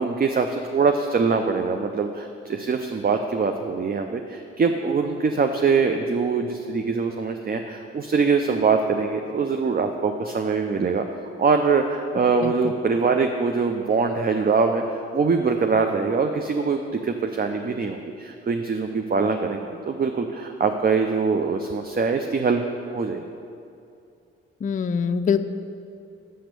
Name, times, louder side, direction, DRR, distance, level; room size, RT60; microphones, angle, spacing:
voice 1, 0.0-22.6 22.9-23.2, right 5 dB, 30° right, 5 dB, 0.5 m, -23 dB
voice 2, 24.6-25.4, left 6 dB, 25° left, 9 dB, 0.4 m, -23 dB
6.4 x 5.9 x 6.7 m, 2.5 s
hypercardioid pair, 45°, 30 cm